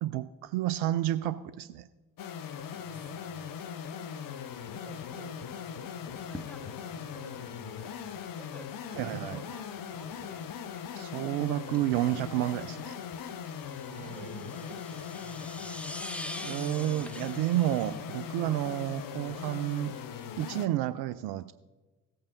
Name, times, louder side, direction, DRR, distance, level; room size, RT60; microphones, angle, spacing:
voice 1, 0.0-1.9 8.9-9.4 10.9-13.0 16.4-19.9 20.4-21.5, right 14 dB, 55° right, 14 dB, 0.5 m, -30 dB
sound 1, 2.2-20.7, left 8 dB, 45° left, 0.8 m, -40 dB
voice 2, 2.7-3.4 4.0-4.1 4.7-8.2 8.9-9.4 9.9-10.4 13.9-15.9, right 6 dB, 75° right, 4 dB, 1.3 m, -51 dB
sound 2, 6.1-19.4, left 1 dB, 5° left, 0.7 m, -47 dB
16.0 x 8.7 x 2.6 m, 1.2 s
figure-of-eight pair, 40°, 47 cm